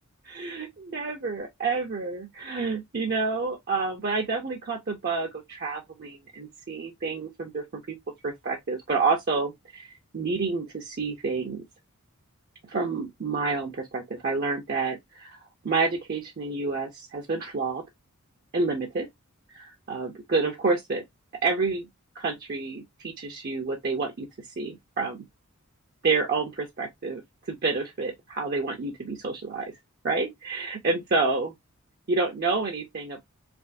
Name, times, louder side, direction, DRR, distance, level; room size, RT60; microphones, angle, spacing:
voice 1, 0.2-8.0 8.2-9.9 10.1-11.6 12.7-17.8 18.5-19.1 19.5-21.0 21.4-21.9 22.1-24.3 24.6-25.2 26.0-27.2 27.5-29.7 30.0-31.5 32.1-33.2, right 4 dB, 45° right, 0.6 m, -29 dB
3.4 x 2.4 x 2.5 m
head